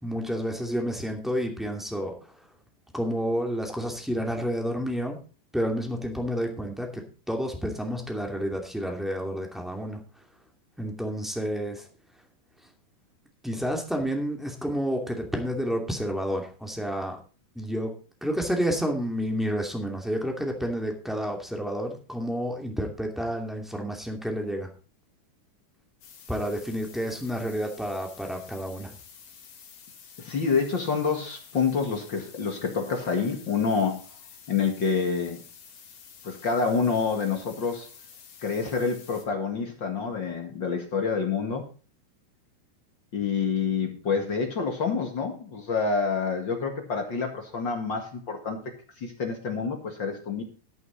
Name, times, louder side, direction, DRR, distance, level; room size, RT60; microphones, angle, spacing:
voice 1, 0.0-2.4 2.9-5.2 5.5-10.0 10.8-11.9 13.4-17.2 17.5-17.9 18.2-24.7 26.3-28.9, equal, ahead, 2 dB, 0.9 m, -30 dB
sound 1, 26.0-39.3, left 7 dB, 65° left, 4.3 m, -50 dB
voice 2, 30.2-34.0 34.5-35.4 36.2-37.9 38.4-41.6 43.1-50.4, left 5 dB, 45° left, 4 dB, 1.5 m, -27 dB
13.5 x 9.3 x 4.0 m, 0.36 s
omnidirectional pair, 5.0 m